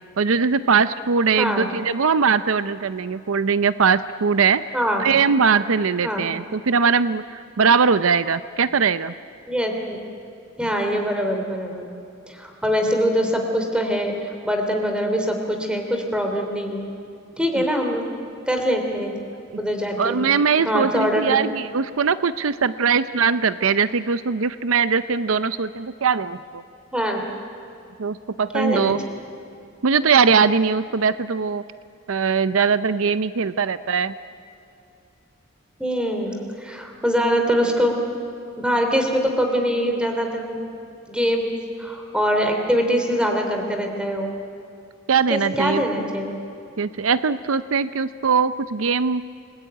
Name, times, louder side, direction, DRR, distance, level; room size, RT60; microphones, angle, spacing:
voice 1, 0.2-9.1 17.6-17.7 20.0-26.6 28.0-29.0 29.8-31.6 32.1-34.1 45.1-45.8 46.8-49.2, right 5 dB, 75° right, 13 dB, 0.6 m, -21 dB
voice 2, 1.3-1.7 4.7-5.0 6.0-6.2 9.5-10.0 10.6-11.9 12.3-16.9 17.4-18.0 18.5-19.1 19.6-20.2 20.6-21.4 26.9-27.2 28.5-28.9 35.8-38.0 38.6-40.6 41.1-41.5 41.8-44.3 45.3-46.4, equal, 5° right, 3 dB, 3.1 m, -23 dB
29.0 x 20.5 x 9.2 m, 2.5 s
head